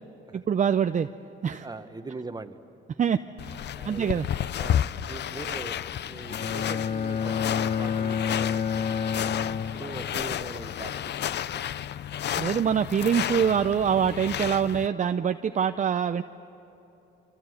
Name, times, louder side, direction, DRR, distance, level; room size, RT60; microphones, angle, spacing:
voice 1, 0.3-1.1 1.4-1.7 3.0-3.2 3.8-4.3 12.4-16.2, right 7 dB, 40° right, 9 dB, 0.6 m, -24 dB
voice 2, 1.6-2.6 3.8-8.6 8.9-9.1 9.7-10.9 11.3-11.9, right 3 dB, 20° right, 8 dB, 1.3 m, -41 dB
sound 1, 3.4-14.9, left 10 dB, 60° left, 0.6 m, -32 dB
Bowed string instrument, 6.3-10.4, left 6 dB, 40° left, 1.3 m, -29 dB
27.5 x 26.0 x 8.1 m, 3.0 s
cardioid pair, 90°, 20 cm